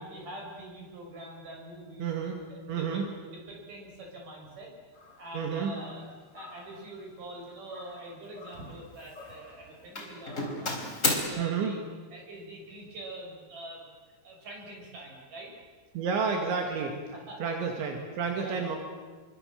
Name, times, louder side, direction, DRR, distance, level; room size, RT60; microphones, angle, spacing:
voice 1, 0.0-2.1 2.5-3.0 3.3-4.7 5.2-6.1 6.3-10.8 11.0-11.8 12.1-15.5 16.8-17.4 18.4-18.7, right 1 dB, 45° right, 0 dB, 7.9 m, -44 dB
voice 2, 2.0-2.4 2.7-3.1 5.3-5.7 11.4-11.8 15.9-16.9 17.4-18.8, right 6 dB, 80° right, 2 dB, 4.8 m, -30 dB
Doorbell, 5.0-5.2 5.7-6.0 6.3-6.7 7.7-8.8 9.0-9.5 10.0-11.2, left 2 dB, 15° left, 3.9 m, -34 dB
28.0 x 24.5 x 7.7 m, 1.4 s
omnidirectional pair, 5.2 m